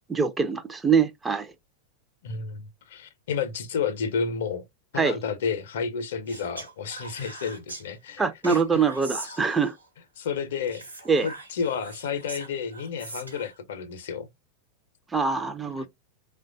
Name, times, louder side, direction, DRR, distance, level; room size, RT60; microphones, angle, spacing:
voice 1, 0.1-1.5 4.9-5.2 8.2-9.8 11.1-11.3 15.1-15.9, right 5 dB, 15° right, 0.4 m, -24 dB
voice 2, 2.2-4.6 4.9-8.2 8.5-8.8 9.2-9.3 10.2-10.8 11.2-14.3, left 6 dB, 60° left, 0.5 m, -31 dB
Speech, 6.3-7.8 8.4-9.9 10.7-13.5, right 2 dB, 85° right, 1.0 m, -41 dB
3.0 x 2.2 x 2.5 m
figure-of-eight pair, 90°, 0 cm